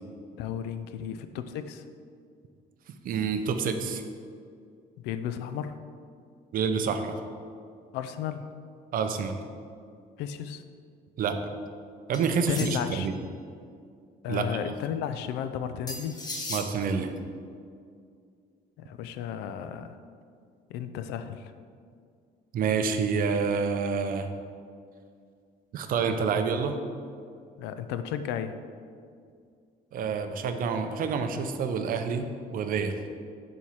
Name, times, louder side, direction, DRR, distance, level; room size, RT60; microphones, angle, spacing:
voice 1, 0.4-1.8 5.0-5.8 7.9-8.5 10.2-10.6 12.5-13.1 14.2-16.2 18.8-20.0 20.7-21.5 27.6-28.6, left 9 dB, 90° left, 10 dB, 0.4 m, -34 dB
voice 2, 3.0-4.0 6.5-7.2 8.9-9.3 11.2-11.3 12.1-13.1 14.3-14.7 16.5-17.2 22.5-24.3 25.7-26.8 29.9-32.3 32.5-33.0, right 5 dB, 55° right, 7 dB, 0.6 m, -28 dB
sound 1, 12.1-13.1 15.9-16.7, left 2 dB, 25° left, 1.0 m, -37 dB
5.5 x 4.3 x 4.7 m, 2.2 s
cardioid pair, 110°, 17 cm